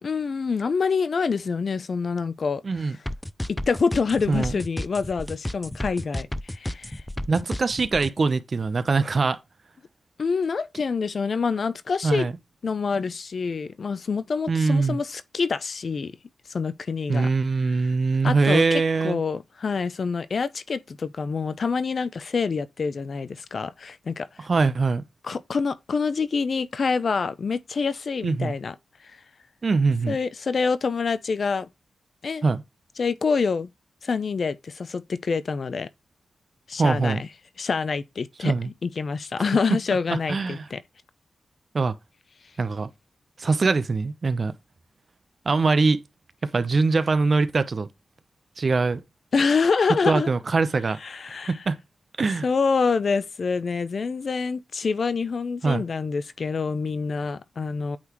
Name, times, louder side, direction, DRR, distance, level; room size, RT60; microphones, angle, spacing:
voice 1, 0.0-2.9 3.5-7.0 10.2-12.3 12.6-16.1 16.5-17.3 18.2-24.3 25.2-28.7 29.0-29.2 30.1-31.7 32.2-32.4 33.0-33.7 34.0-35.9 36.7-37.3 37.6-40.8 49.3-50.3 51.0-51.5 52.4-58.0, left 5 dB, 55° left, 0.6 m, -26 dB
voice 2, 2.6-3.0 4.3-4.5 7.3-9.4 12.0-12.3 14.5-15.0 17.1-19.2 24.4-25.0 28.2-28.5 29.6-30.2 32.4-32.6 36.8-37.2 38.4-38.7 40.1-40.7 41.7-41.9 42.6-42.9 43.4-44.5 45.4-46.0 46.4-47.9 48.6-49.0 50.0-51.0 51.5-51.8 52.2-52.5 55.6-55.8, right 4 dB, 45° right, 0.8 m, -22 dB
sound 1, 3.1-8.1, left 1 dB, 10° left, 0.4 m, -31 dB
8.6 x 4.0 x 3.0 m
wide cardioid pair, 105°, 0 cm